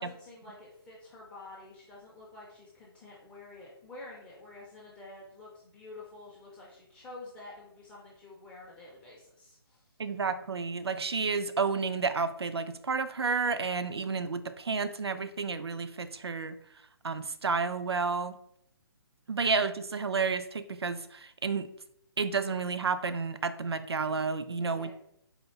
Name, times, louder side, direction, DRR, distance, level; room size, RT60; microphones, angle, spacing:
voice 1, 0.0-9.9 19.3-19.4 24.7-24.9, left 2 dB, 10° left, -5 dB, 0.4 m, -49 dB
voice 2, 10.0-16.5 17.0-18.4 19.3-21.7 22.2-24.9, right 4 dB, 80° right, 11 dB, 0.4 m, -31 dB
4.2 x 2.7 x 2.7 m, 0.74 s
figure-of-eight pair, 140°, 13 cm